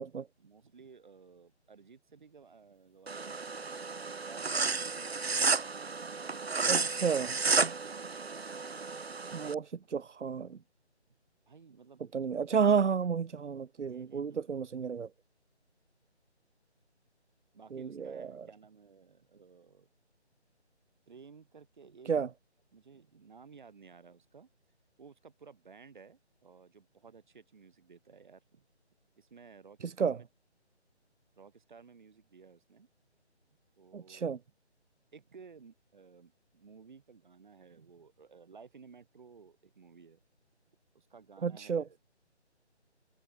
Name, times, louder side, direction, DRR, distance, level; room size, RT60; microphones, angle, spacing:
voice 1, 0.4-5.5 6.1-8.1 11.1-11.2 11.4-12.1 13.0-13.1 13.9-14.5 17.5-19.9 21.1-22.3 22.7-24.5 25.0-28.7 29.2-30.3 31.4-32.9 33.8-34.4 35.1-40.2 40.9-42.0, right 5 dB, 45° right, 6.6 m, -55 dB
sound 1, 3.1-9.5, right 4 dB, 60° right, 1.6 m, -32 dB
voice 2, 6.6-7.3 9.3-10.6 12.1-15.1 17.7-18.3 22.1-22.3 29.8-30.2 33.9-34.4 41.4-41.8, right 6 dB, 85° right, 0.6 m, -31 dB
figure-of-eight pair, 155°, 34 cm